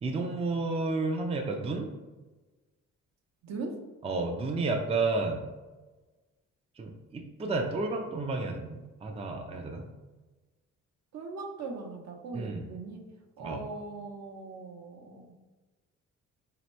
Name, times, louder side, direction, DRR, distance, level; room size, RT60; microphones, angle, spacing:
voice 1, 0.0-1.9 4.0-5.4 6.8-9.9 12.3-12.7 13.4-13.6, right 3 dB, 20° right, 2 dB, 0.4 m, -31 dB
voice 2, 3.4-3.7 11.1-13.0 13.4-15.3, right 3 dB, 60° right, 2 dB, 0.8 m, -40 dB
4.3 x 2.9 x 3.1 m, 1.2 s
cardioid pair, 90°, 30 cm